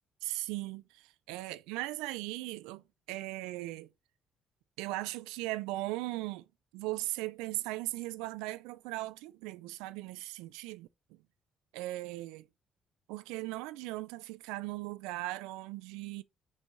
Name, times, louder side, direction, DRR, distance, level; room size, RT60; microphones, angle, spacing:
voice 1, 0.2-3.9 4.8-6.4 6.7-11.2 11.7-12.4 13.1-16.2, right 18 dB, 90° right, 0.4 m, -38 dB
4.8 x 4.2 x 5.6 m
supercardioid pair, 60°, 0 cm